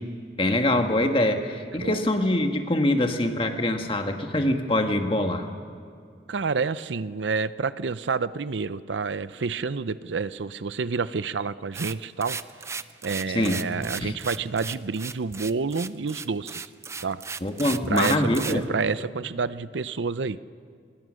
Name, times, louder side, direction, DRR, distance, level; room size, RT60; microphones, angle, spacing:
voice 1, 0.4-5.5 13.3-13.6 14.0-14.1 17.4-18.7, left 1 dB, 30° left, 5 dB, 1.6 m, -24 dB
voice 2, 6.3-12.4 13.0-16.7 17.0-17.2 17.9-20.4, right 4 dB, 90° right, 15 dB, 0.6 m, -29 dB
sound 1, 11.7-18.6, right 5 dB, 15° right, 0.5 m, -35 dB
25.5 x 21.5 x 6.4 m, 2.3 s
head